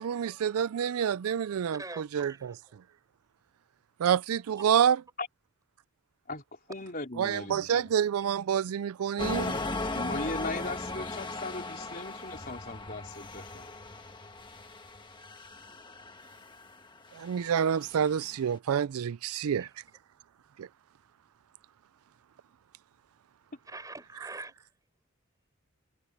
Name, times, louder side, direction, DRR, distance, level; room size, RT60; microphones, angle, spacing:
voice 1, 0.0-2.5 4.0-5.0 7.2-9.5 17.1-19.7 20.6-20.7, right 8 dB, 80° right, 0.4 m, -28 dB
voice 2, 1.7-2.6 19.4-19.6 23.7-24.7, right 2 dB, 15° right, 6.6 m, -44 dB
voice 3, 6.7-7.9 9.9-13.7, left 2 dB, 40° left, 4.1 m, -38 dB
sound 1, 9.2-18.4, left 2 dB, 20° left, 1.6 m, -38 dB
head